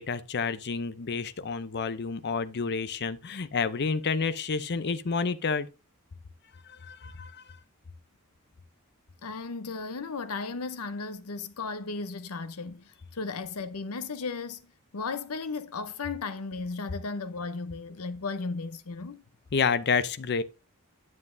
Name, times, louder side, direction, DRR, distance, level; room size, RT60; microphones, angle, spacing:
voice 1, 0.0-5.7 6.7-7.4 19.5-20.4, left 5 dB, 50° left, 0.6 m, -29 dB
voice 2, 9.2-19.2, left 4 dB, 80° left, 0.8 m, -35 dB
9.7 x 7.4 x 2.6 m
head